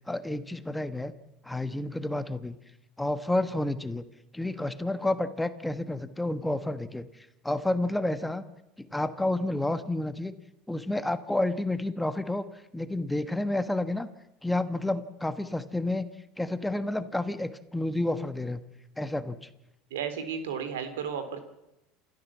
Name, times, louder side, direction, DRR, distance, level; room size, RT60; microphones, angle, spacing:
voice 1, 0.1-1.1 1.4-2.6 3.0-4.0 4.3-8.4 8.8-10.3 10.7-12.5 12.7-14.1 14.4-16.1 16.4-18.6 19.0-19.5, left 1 dB, 5° left, 11 dB, 1.4 m, -30 dB
voice 2, 19.9-21.4, right 7 dB, 90° right, 10 dB, 3.2 m, -33 dB
28.0 x 13.5 x 7.4 m, 0.90 s
supercardioid pair, 105°, 0 cm